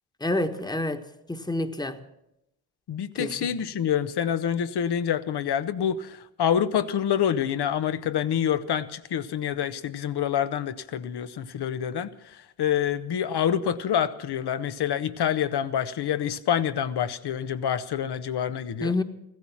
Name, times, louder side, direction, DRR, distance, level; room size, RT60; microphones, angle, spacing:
voice 1, 0.2-1.0 1.3-2.0 3.2-3.3 18.8-19.0, left 2 dB, 10° left, 8 dB, 1.4 m, -27 dB
voice 2, 2.9-18.9, left 9 dB, 55° left, 12 dB, 1.2 m, -27 dB
15.5 x 14.5 x 6.0 m, 0.84 s
supercardioid pair, 60°, 46 cm